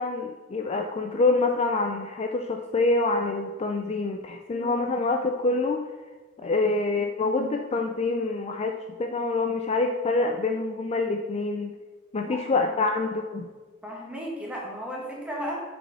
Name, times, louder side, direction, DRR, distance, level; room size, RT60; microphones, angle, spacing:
voice 1, 0.0-5.8 6.4-11.7 12.1-13.5, left 3 dB, 30° left, 4 dB, 0.4 m, -26 dB
voice 2, 12.1-12.7 13.8-15.6, equal, 5° right, -3 dB, 1.7 m, -35 dB
6.5 x 5.1 x 6.1 m, 1.3 s
head